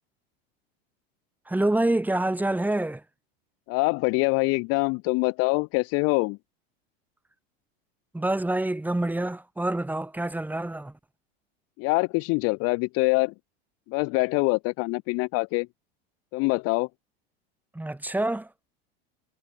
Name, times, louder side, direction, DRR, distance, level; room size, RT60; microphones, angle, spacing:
voice 1, 1.5-3.0 8.1-10.9 17.7-18.5, right 1 dB, 5° right, 6.3 m, -26 dB
voice 2, 3.7-6.4 11.8-13.3 13.9-15.7 16.3-16.9, left 28 dB, 50° left, 0.8 m, -24 dB
supercardioid pair, 120°, 31 cm